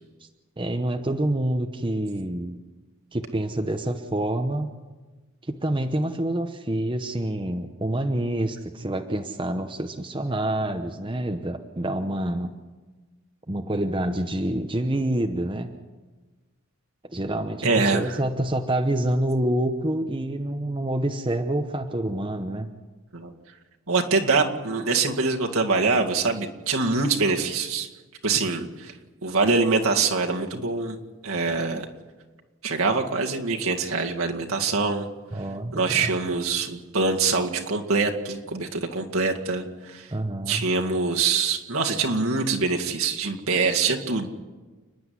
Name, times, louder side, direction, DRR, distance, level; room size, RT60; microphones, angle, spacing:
voice 1, 0.6-2.6 3.1-4.7 5.4-12.5 13.5-15.7 17.1-22.7 35.3-36.1 40.1-40.6, right 1 dB, 20° right, 5 dB, 0.9 m, -27 dB
voice 2, 17.6-18.0 23.1-23.3 23.9-27.9 28.2-28.9 29.2-31.0 31.2-31.9 32.6-35.1 35.7-40.1 40.5-44.3, right 4 dB, 70° right, 1 dB, 2.1 m, -24 dB
30.0 x 10.5 x 9.5 m, 1.3 s
head